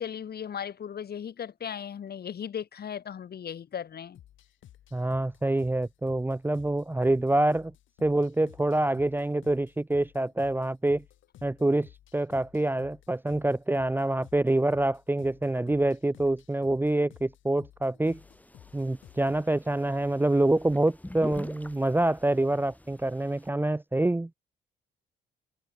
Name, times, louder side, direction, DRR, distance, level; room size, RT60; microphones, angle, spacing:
voice 1, 0.0-4.2, left 8 dB, 50° left, 2.3 m, -37 dB
sound 1, 4.1-19.5, left 12 dB, 75° left, 7.9 m, -54 dB
voice 2, 4.9-7.7 8.0-11.0 11.4-18.2 18.7-24.4, right 2 dB, 10° right, 0.8 m, -26 dB
sound 2, 18.0-23.5, left 1 dB, 10° left, 3.4 m, -45 dB
cardioid pair, 90°, 20 cm